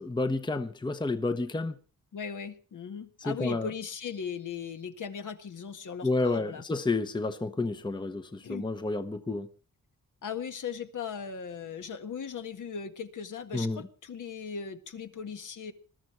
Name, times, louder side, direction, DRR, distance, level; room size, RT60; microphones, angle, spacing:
voice 1, 0.0-1.8 3.2-3.7 6.0-9.5 13.5-13.8, left 3 dB, 15° left, 0.9 m, -30 dB
voice 2, 2.1-6.6 8.4-8.7 10.2-15.7, left 6 dB, 65° left, 1.7 m, -38 dB
20.5 x 13.5 x 4.5 m
wide cardioid pair, 125°, 33 cm